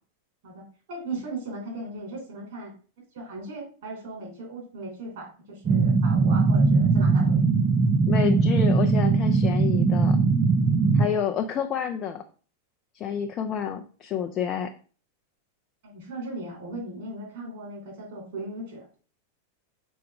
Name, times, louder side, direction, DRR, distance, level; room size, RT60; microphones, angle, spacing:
voice 1, 0.4-2.7 3.1-7.5 15.8-18.8, right 2 dB, 55° right, 0 dB, 3.1 m, -37 dB
sound 1, 5.6-11.1, right 4 dB, 25° right, 0.6 m, -20 dB
voice 2, 8.1-10.2 10.9-12.2 12.9-14.7, left 8 dB, 30° left, 6 dB, 0.5 m, -28 dB
6.2 x 4.7 x 3.5 m, 0.39 s
figure-of-eight pair, 90°, 0 cm